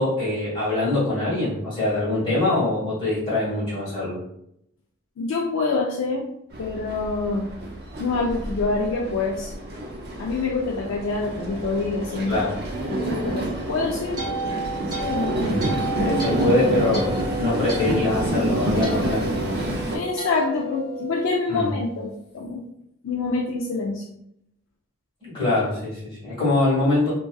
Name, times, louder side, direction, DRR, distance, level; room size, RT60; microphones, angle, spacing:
voice 1, 0.0-4.1 12.3-12.6 15.4-15.7 16.2-19.6 21.5-21.7 25.2-27.1, left 2 dB, 20° left, -9 dB, 1.3 m, -23 dB
voice 2, 5.2-6.3 6.6-7.5 8.0-9.5 10.2-12.4 12.9-14.3 14.9-15.6 16.0-17.0 19.9-22.6 23.0-24.0, left 3 dB, 60° left, -1 dB, 0.3 m, -26 dB
Train, 6.5-20.0, right 1 dB, 45° right, 0.4 m, -29 dB
sound 1, 13.6-22.0, right 2 dB, 15° right, 1.1 m, -33 dB
2.6 x 2.3 x 2.3 m, 0.77 s
head